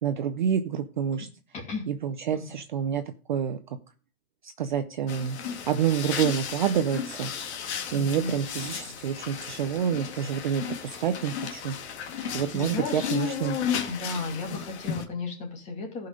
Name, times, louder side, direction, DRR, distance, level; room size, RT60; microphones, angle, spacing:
voice 1, 0.0-1.3 1.9-3.0 3.3-3.6 4.4-5.4 5.7-7.3 7.9-11.8 12.3-13.6, right 8 dB, 35° right, 9 dB, 0.5 m, -28 dB
voice 2, 1.5-1.9 2.3-2.6 7.9-8.3 8.8-8.9 12.5-13.2 13.8-16.1, left 3 dB, 15° left, 1 dB, 2.5 m, -34 dB
sound 1, 5.1-15.1, left 8 dB, 50° left, 1.9 m, -34 dB
14.5 x 5.7 x 5.0 m, 0.38 s
hypercardioid pair, 165°, 42 cm